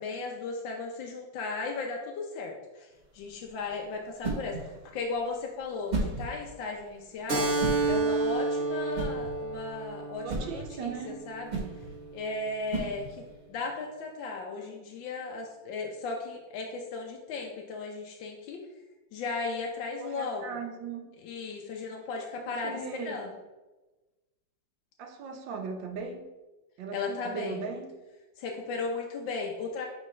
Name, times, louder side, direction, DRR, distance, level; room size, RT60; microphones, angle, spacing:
voice 1, 0.0-7.5 7.9-11.5 12.1-18.6 19.1-20.4 21.2-23.3 26.9-27.6 28.4-29.9, left 3 dB, 85° left, 1 dB, 1.5 m, -36 dB
sound 1, 2.9-13.5, right 3 dB, 25° right, 1.3 m, -38 dB
Keyboard (musical), 7.3-12.4, right 3 dB, 45° right, 1.5 m, -31 dB
voice 2, 10.2-11.2 20.0-21.1 22.4-23.2 25.0-26.3 26.8-27.9, right 5 dB, 90° right, 4 dB, 1.6 m, -38 dB
9.0 x 4.3 x 3.2 m, 1.1 s
omnidirectional pair, 2.0 m